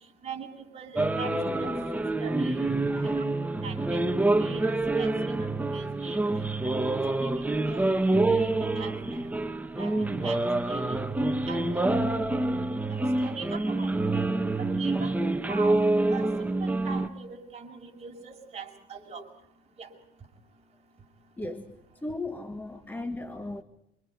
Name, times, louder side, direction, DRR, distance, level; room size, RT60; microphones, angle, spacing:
voice 1, 0.7-1.7 2.2-2.8 3.1-3.2 3.6-4.0 4.4-5.1 5.7-6.2 6.6-7.9 8.2-8.5 8.8-8.9 9.7-10.4 10.7-11.0 11.5-12.0 12.9-14.2 14.6-15.8 16.1-19.2 19.8-19.9, right 5 dB, 40° right, 1 dB, 6.6 m, -41 dB
sound 1, 1.0-17.1, right 2 dB, 10° right, 1.2 m, -27 dB
voice 2, 2.9-3.2 21.4-21.8 22.0-23.6, left 2 dB, 10° left, 7 dB, 1.5 m, -36 dB
28.5 x 25.5 x 5.2 m, 0.79 s
cardioid pair, 110°, 17 cm